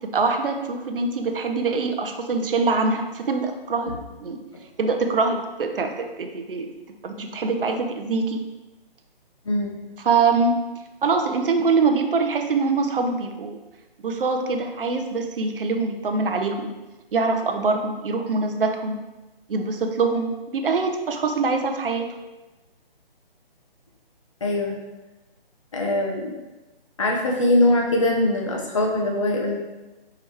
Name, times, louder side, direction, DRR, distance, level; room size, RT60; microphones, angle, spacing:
voice 1, 0.0-3.9 4.2-4.4 4.8-6.7 7.0-8.4 10.0-10.5 11.0-13.6 14.0-16.7 17.1-19.0 19.5-22.1, right 4 dB, 65° right, 5 dB, 0.6 m, -24 dB
voice 2, 24.4-24.8 25.7-26.3 27.0-29.5, left 1 dB, 30° left, 0 dB, 0.6 m, -22 dB
4.6 x 2.9 x 3.4 m, 1.1 s
hypercardioid pair, 165°, 30 cm